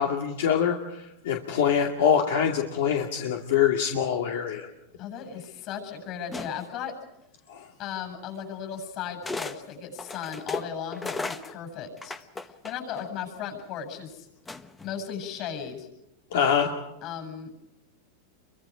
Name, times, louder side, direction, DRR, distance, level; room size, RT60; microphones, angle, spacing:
voice 1, 0.0-4.7 7.5-7.7 16.3-16.7, left 8 dB, 75° left, 2 dB, 2.3 m, -24 dB
voice 2, 5.0-7.0 7.8-12.2 12.6-14.3 14.8-15.9 17.0-17.5, left 8 dB, 40° left, 5 dB, 7.9 m, -36 dB
sound 1, 6.3-6.8 7.9-8.0 9.2-9.6 9.9-13.1 14.5-14.9, left 3 dB, 10° left, 1.1 m, -35 dB
29.0 x 24.0 x 5.1 m, 0.90 s
supercardioid pair, 145°, 0 cm